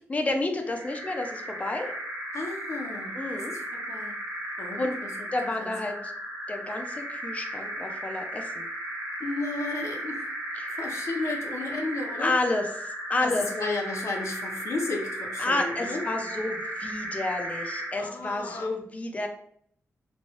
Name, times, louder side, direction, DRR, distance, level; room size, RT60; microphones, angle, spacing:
voice 1, 0.1-1.9 3.1-3.5 4.8-5.0 5.3-6.1 6.5-8.7 10.6-10.8 12.2-13.5 15.4-19.3, left 2 dB, 30° left, 4 dB, 0.4 m, -30 dB
sound 1, 0.6-18.1, right 1 dB, 70° right, 0.8 m, -35 dB
voice 2, 2.3-4.1 4.6-5.1 5.6-5.7 9.2-10.3 10.8-12.3 13.2-16.0 18.0-18.7, left 3 dB, 70° left, 1 dB, 0.6 m, -33 dB
3.0 x 2.3 x 2.8 m, 0.65 s
wide cardioid pair, 130°, 5 cm